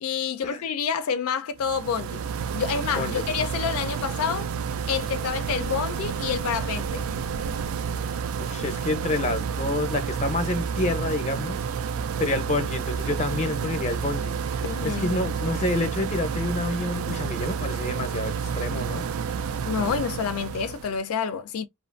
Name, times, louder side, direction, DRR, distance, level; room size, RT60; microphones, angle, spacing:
voice 1, 0.0-2.2 2.5-4.5 4.9-7.0 14.6-15.1 19.7-21.7, left 7 dB, 80° left, 0.4 m, -28 dB
sound 1, 1.6-21.0, right 6 dB, 75° right, 0.3 m, -30 dB
voice 2, 2.9-3.3 8.4-11.6 12.2-19.1, left 2 dB, 35° left, 0.6 m, -28 dB
2.5 x 2.4 x 2.4 m
head